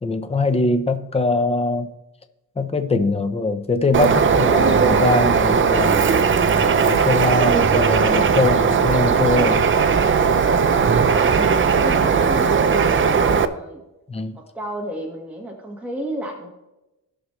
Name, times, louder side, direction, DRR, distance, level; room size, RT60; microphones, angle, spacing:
voice 1, 0.0-1.9 2.6-6.1 6.7-9.7 14.1-14.4, left 3 dB, 15° left, 8 dB, 0.7 m, -22 dB
Bird, 3.9-13.4, right 6 dB, 35° right, 0.5 m, -17 dB
voice 2, 11.1-13.8 14.3-16.5, right 1 dB, 5° right, -2 dB, 1.6 m, -32 dB
17.5 x 6.3 x 3.2 m, 0.98 s
wide cardioid pair, 145°, 37 cm